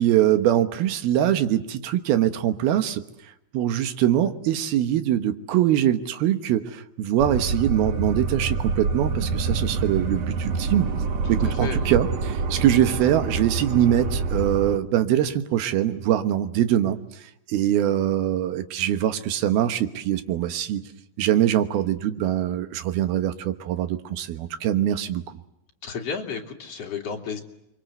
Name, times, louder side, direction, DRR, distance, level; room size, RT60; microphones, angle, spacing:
voice 1, 0.0-3.0 3.5-10.9 11.3-17.0 17.5-20.8 21.2-25.4, right 11 dB, 75° right, 9 dB, 3.2 m, -23 dB
sound 1, 7.2-14.8, right 4 dB, 55° right, 1.9 m, -27 dB
voice 2, 11.4-11.9 25.8-27.4, left 6 dB, 45° left, 1 dB, 3.3 m, -32 dB
30.0 x 23.5 x 8.0 m, 0.83 s
omnidirectional pair, 4.5 m